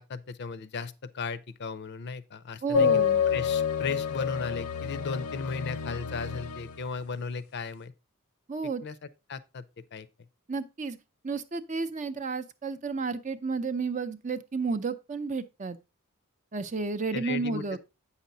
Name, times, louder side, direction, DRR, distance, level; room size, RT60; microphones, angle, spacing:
voice 1, 0.0-3.0 3.3-7.9 8.8-9.0 9.3-9.6 9.9-10.1 17.1-17.8, left 5 dB, 50° left, 0.5 m, -36 dB
voice 2, 2.6-3.2 8.5-8.8 10.5-11.0 11.2-15.8 16.5-17.8, right 4 dB, 35° right, 0.5 m, -32 dB
sound 1, 2.7-6.8, left 8 dB, 90° left, 0.7 m, -28 dB
8.3 x 5.7 x 3.9 m
head